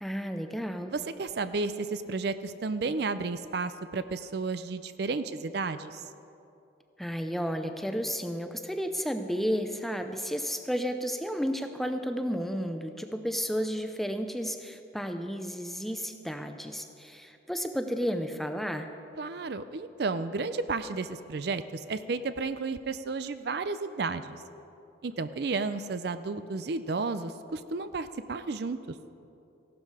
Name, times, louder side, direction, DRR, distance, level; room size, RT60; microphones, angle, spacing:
voice 1, 0.0-0.9 7.0-18.9, equal, ahead, 6 dB, 0.6 m, -32 dB
voice 2, 0.9-6.0 19.2-24.4 25.0-28.8, right 4 dB, 55° right, 12 dB, 0.5 m, -32 dB
15.5 x 12.0 x 4.9 m, 2.7 s
head